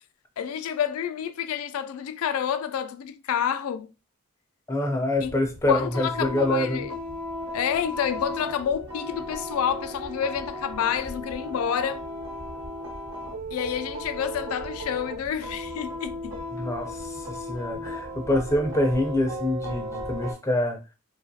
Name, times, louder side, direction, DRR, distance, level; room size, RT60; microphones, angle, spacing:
voice 1, 0.4-3.9 5.2-5.3 5.7-6.9 7.5-12.0 13.5-16.4, left 8 dB, 85° left, 0.3 m, -29 dB
voice 2, 4.7-6.9 16.5-20.8, left 1 dB, 15° left, 0.4 m, -26 dB
sound 1, 5.2-20.3, equal, 75° right, 1.1 m, -36 dB
3.1 x 2.2 x 2.6 m
head